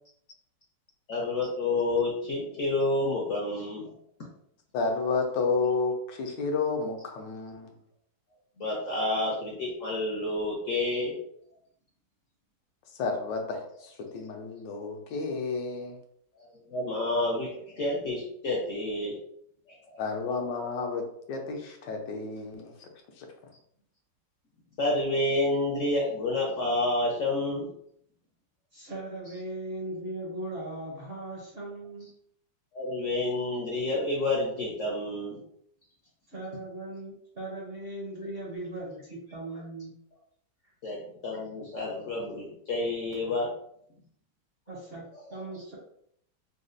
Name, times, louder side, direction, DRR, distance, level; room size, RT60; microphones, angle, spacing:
voice 1, 1.1-3.9 8.6-11.1 16.4-19.2 19.8-20.2 24.8-27.7 29.2-29.4 32.7-35.4 40.8-41.0 41.2-43.5 45.1-45.6, left 2 dB, 60° left, -2 dB, 0.8 m, -29 dB
voice 2, 4.7-7.7 13.0-16.0 20.0-22.7 23.2-23.3, left 4 dB, 80° left, 3 dB, 1.2 m, -31 dB
voice 3, 28.7-32.1 36.3-39.9 44.7-45.0 45.3-45.8, right 1 dB, 45° right, -5 dB, 0.9 m, -38 dB
4.0 x 2.2 x 2.5 m, 0.69 s
omnidirectional pair, 1.9 m